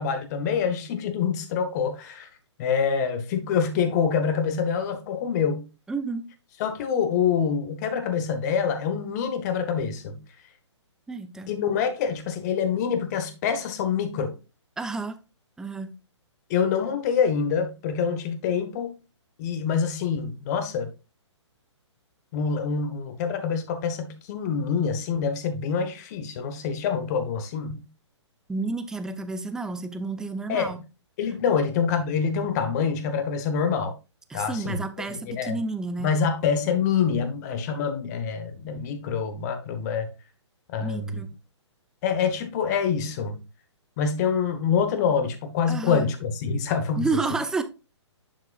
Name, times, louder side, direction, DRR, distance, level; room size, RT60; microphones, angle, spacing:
voice 1, 0.0-2.3 2.6-5.7 6.6-10.2 11.5-14.4 16.5-18.9 19.4-20.9 22.3-27.9 30.5-30.8 31.2-33.9 34.3-34.8 35.1-35.6 36.0-40.1 40.7-41.2 42.0-43.4 44.0-47.1, left 6 dB, 35° left, 1.4 m, -26 dB
voice 2, 5.9-6.2 11.1-11.5 14.8-15.2 15.6-15.9 28.5-30.8 34.3-36.1 40.8-41.3 45.7-46.1 47.0-47.6, right 3 dB, 5° right, 0.5 m, -30 dB
10.5 x 4.8 x 2.5 m
figure-of-eight pair, 125°, 15 cm